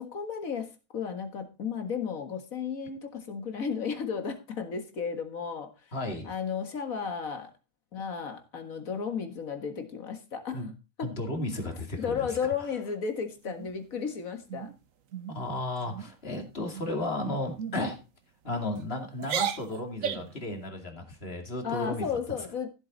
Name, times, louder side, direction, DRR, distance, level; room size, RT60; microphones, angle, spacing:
voice 1, 0.0-5.9 6.2-7.5 7.9-10.6 11.0-11.1 12.0-14.7 21.6-22.7, left 6 dB, 80° left, 7 dB, 2.1 m, -34 dB
voice 2, 5.9-6.3 10.5-10.7 11.0-12.3 15.3-18.0 18.4-22.2, left 1 dB, 45° left, 4 dB, 2.7 m, -34 dB
sound 1, 13.4-14.1 14.5-14.7 15.1-15.4 15.8-16.1 16.7-17.1 17.6-17.8 18.5-18.8 19.2-20.4, right 8 dB, 75° right, 1.3 m, -35 dB
15.0 x 7.8 x 4.0 m, 0.29 s
omnidirectional pair, 1.4 m